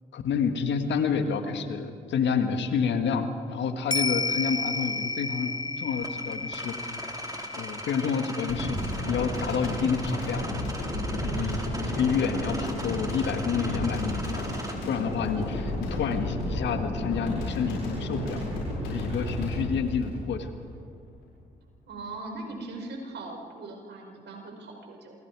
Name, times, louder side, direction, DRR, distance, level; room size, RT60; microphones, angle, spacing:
voice 1, 0.1-5.5 5.8-7.0 7.5-8.8 9.1-10.4 11.2-14.5 14.9-18.4 18.8-20.5, left 6 dB, 70° left, 7 dB, 1.7 m, -29 dB
sound 1, 3.9-12.5 12.8-12.9, left 3 dB, 20° left, 0.9 m, -34 dB
sound 2, 6.0-14.7, right 1 dB, 20° right, 3.9 m, -40 dB
sound 3, 8.5-20.8 21.1-21.2, left 1 dB, 90° left, 7.5 m, -32 dB
voice 2, 21.9-25.1, right 2 dB, 65° right, 2 dB, 5.0 m, -40 dB
27.5 x 22.0 x 4.8 m, 2.2 s
hypercardioid pair, 45°, 19 cm